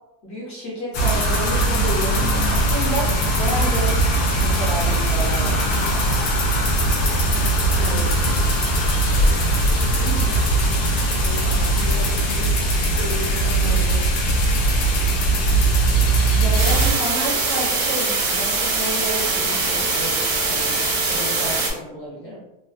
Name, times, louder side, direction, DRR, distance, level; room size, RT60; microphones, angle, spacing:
voice 1, 0.2-6.0 9.4-10.4 16.4-22.4, right 1 dB, 50° left, -6 dB, 0.9 m, -31 dB
sound 1, 0.9-16.9, right 1 dB, 85° left, 1.2 m, -20 dB
voice 2, 7.8-8.1 9.1-9.6 11.1-14.1, equal, 25° right, -7 dB, 0.4 m, -34 dB
sound 2, 16.6-21.7, right 3 dB, 60° right, 0.8 m, -22 dB
3.2 x 2.1 x 2.4 m, 0.92 s
omnidirectional pair, 1.7 m